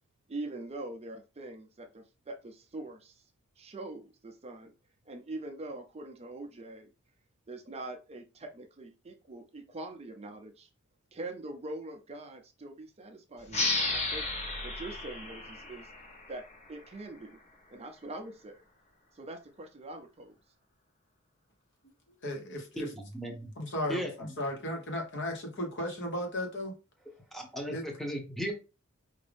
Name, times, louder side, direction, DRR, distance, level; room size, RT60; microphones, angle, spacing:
voice 1, 0.3-3.2 3.6-4.7 5.1-6.9 7.5-10.7 11.1-14.3 14.6-15.9 16.3-17.4 17.7-18.6 19.1-20.3, right 2 dB, 30° right, 0.5 m, -43 dB
sound 1, 13.5-16.8, left 2 dB, 30° left, 1.0 m, -33 dB
voice 2, 22.2-22.9 23.6-26.7 27.7-27.8, left 1 dB, 55° left, 1.2 m, -35 dB
voice 3, 22.8-23.5 23.9-24.1 27.3-28.5, equal, ahead, 0.8 m, -36 dB
4.9 x 2.6 x 3.4 m
head